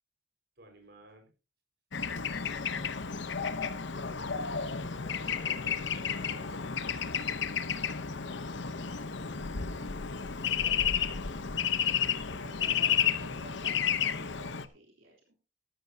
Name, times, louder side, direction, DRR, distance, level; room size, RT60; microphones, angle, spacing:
voice 1, 0.6-1.3 5.0-6.6, equal, 55° right, 4 dB, 5.1 m, -54 dB
Bird / Traffic noise roadway noise, 1.9-14.7, left 7 dB, 65° left, 0.9 m, -32 dB
voice 2, 9.2-10.3 12.4-15.4, right 2 dB, 80° right, -1 dB, 3.5 m, -53 dB
14.0 x 13.0 x 2.8 m, 0.32 s
head